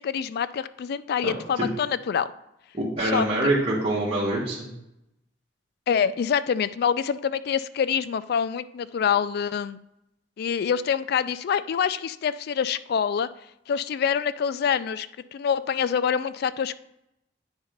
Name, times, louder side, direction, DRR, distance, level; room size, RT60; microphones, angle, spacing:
voice 1, 0.0-2.3 3.0-3.3 5.9-9.8 10.4-13.3 13.7-15.1 15.3-16.7, left 7 dB, 55° left, 15 dB, 0.3 m, -26 dB
voice 2, 1.2-1.6 2.7-4.7, right 1 dB, 30° right, -8 dB, 1.6 m, -25 dB
8.9 x 3.9 x 5.1 m, 0.85 s
head